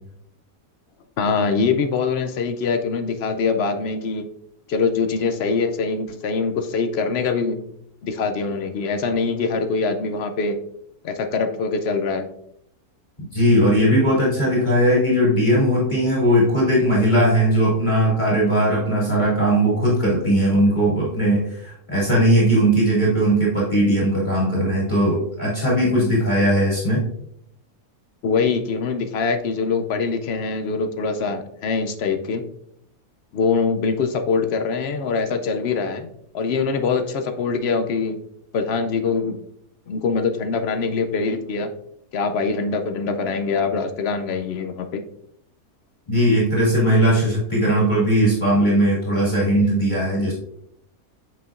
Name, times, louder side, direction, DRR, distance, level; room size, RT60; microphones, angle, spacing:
voice 1, 1.2-4.2 4.7-7.6 8.0-10.6 11.0-12.3 28.2-32.4 33.3-36.1 36.3-38.2 38.5-39.4 39.9-41.7 42.1-45.0, left 4 dB, 70° left, 7 dB, 0.6 m, -23 dB
voice 2, 13.3-27.0 46.1-50.3, equal, 30° left, -6 dB, 2.4 m, -18 dB
7.9 x 5.5 x 2.5 m, 0.73 s
omnidirectional pair, 1.7 m